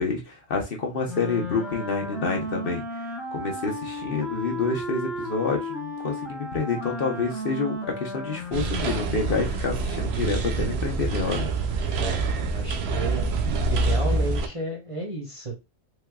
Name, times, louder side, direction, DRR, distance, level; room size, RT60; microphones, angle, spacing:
voice 1, 0.0-2.8 3.3-11.5, left 4 dB, 50° left, 0.9 m, -28 dB
Wind instrument woodwind instrument, 1.1-9.3, left 1 dB, ahead, 0.8 m, -34 dB
sound 1, 8.5-14.5, right 3 dB, 65° right, 0.8 m, -26 dB
voice 2, 12.5-13.3 13.7-15.6, right 2 dB, 30° right, 0.7 m, -32 dB
3.3 x 3.3 x 2.3 m
omnidirectional pair, 1.3 m